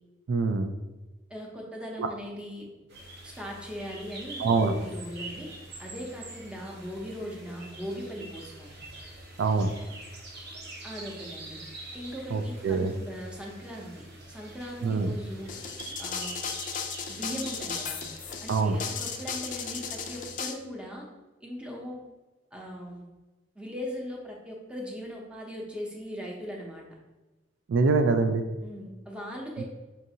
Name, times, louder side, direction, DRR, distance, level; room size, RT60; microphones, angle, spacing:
voice 1, 0.3-0.7 2.0-2.1 4.4-4.7 9.4-9.7 12.3-12.9 14.8-15.1 18.5-18.8 27.7-28.4 29.6-29.7, right 4 dB, 80° right, 7 dB, 0.3 m, -24 dB
voice 2, 1.3-2.7 3.2-5.5 5.8-8.7 10.8-11.6 11.9-15.5 16.0-16.4 17.1-18.0 18.4-21.0 21.4-22.0 22.5-23.0 23.6-26.8 28.6-29.6, equal, 5° right, -2 dB, 0.7 m, -39 dB
sound 1, 2.9-20.3, right 2 dB, 60° right, 0.8 m, -45 dB
sound 2, 15.5-20.5, left 6 dB, 45° left, 0.4 m, -35 dB
5.7 x 2.6 x 2.7 m, 1.1 s
head